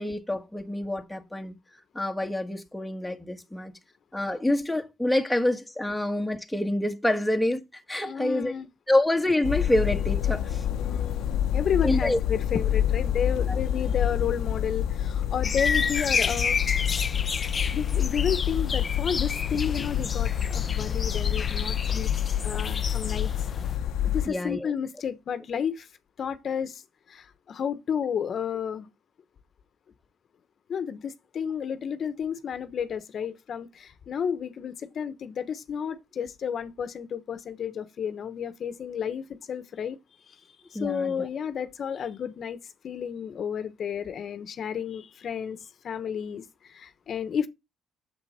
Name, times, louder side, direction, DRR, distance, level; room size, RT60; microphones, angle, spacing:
voice 1, 0.0-1.5 1.9-3.7 4.1-8.5 8.9-10.6 11.8-12.2 13.5-13.6 24.3-24.7 40.7-41.3, left 1 dB, 5° left, 1.5 m, -27 dB
voice 2, 8.0-8.7 10.7-16.6 17.7-22.1 22.4-23.5 24.0-25.9 26.2-26.8 27.1-28.9 30.7-45.6 45.8-47.5, left 7 dB, 55° left, 1.1 m, -32 dB
sound 1, 9.4-24.3, left 10 dB, 80° left, 0.8 m, -27 dB
sound 2, 15.4-23.8, left 5 dB, 35° left, 0.6 m, -31 dB
8.4 x 7.2 x 4.3 m
cardioid pair, 90°, 0 cm